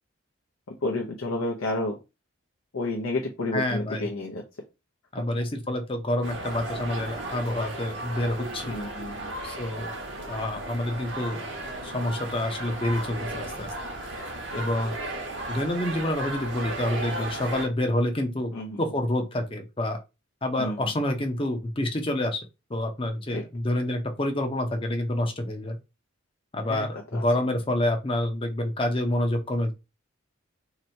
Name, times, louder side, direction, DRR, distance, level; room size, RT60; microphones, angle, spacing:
voice 1, 0.7-2.0 2.7-4.4 5.2-5.3 8.6-9.3 14.5-14.6 18.5-18.8 20.6-20.8 23.3-23.4 26.7-27.2, left 2 dB, 80° left, 0 dB, 0.7 m, -31 dB
voice 2, 3.5-4.0 5.1-8.7 9.4-9.9 10.3-11.4 11.8-13.7 14.6-14.9 15.5-18.5 18.8-20.0 20.4-22.4 22.7-25.8 26.5-29.7, left 1 dB, 25° left, 4 dB, 0.6 m, -28 dB
sound 1, 6.2-17.7, right 1 dB, 55° right, 0.9 m, -35 dB
2.9 x 2.7 x 4.3 m, 0.26 s
head